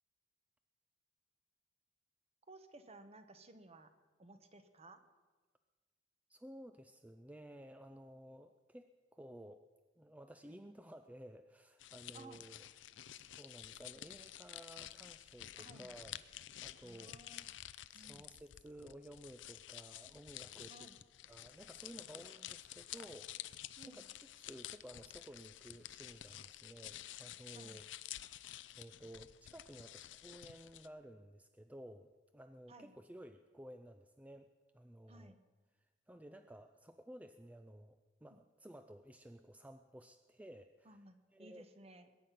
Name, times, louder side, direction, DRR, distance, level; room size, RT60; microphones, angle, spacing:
voice 1, 2.5-3.9 4.2-5.0 12.1-12.4 15.6-15.9 16.8-17.5 17.9-18.2 20.7-21.0 23.8-24.1 27.5-27.8 32.7-33.0 35.1-35.4 38.3-38.4 40.8-42.1, right 2 dB, 35° right, 9 dB, 1.1 m, -57 dB
voice 2, 6.3-9.6 10.0-12.6 13.1-16.2 16.6-17.6 17.9-20.9 21.3-27.9 28.8-34.5 34.7-35.4 36.1-41.0 41.3-41.7, right 1 dB, 10° right, 8 dB, 0.4 m, -55 dB
sound 1, 11.8-30.9, left 13 dB, 90° left, 0.5 m, -51 dB
21.0 x 9.2 x 5.8 m, 1.3 s
head